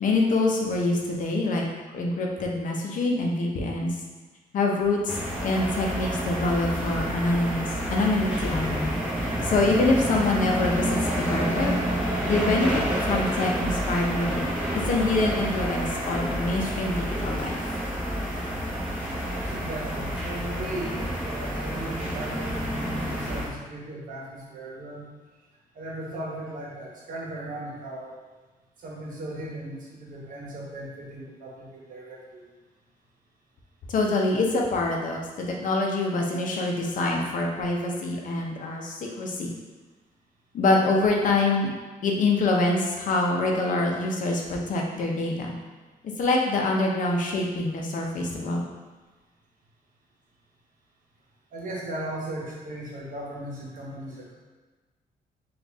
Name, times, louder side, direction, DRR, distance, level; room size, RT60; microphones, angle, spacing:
voice 1, 0.0-1.6 1.9-4.0 4.5-8.9 9.2-11.8 12.1-12.8 13.1-14.4 14.7-17.6 33.9-39.5 40.5-41.7 42.0-45.5 46.0-48.6, left 2 dB, 60° left, 0 dB, 0.7 m, -25 dB
sound 1, 5.1-23.5, equal, 5° right, 0.9 m, -29 dB
voice 2, 19.3-25.1 25.7-28.1 28.8-32.5 51.5-54.3, right 1 dB, 60° right, -3 dB, 1.1 m, -37 dB
4.1 x 2.5 x 3.5 m, 1.3 s
cardioid pair, 120°, 15 cm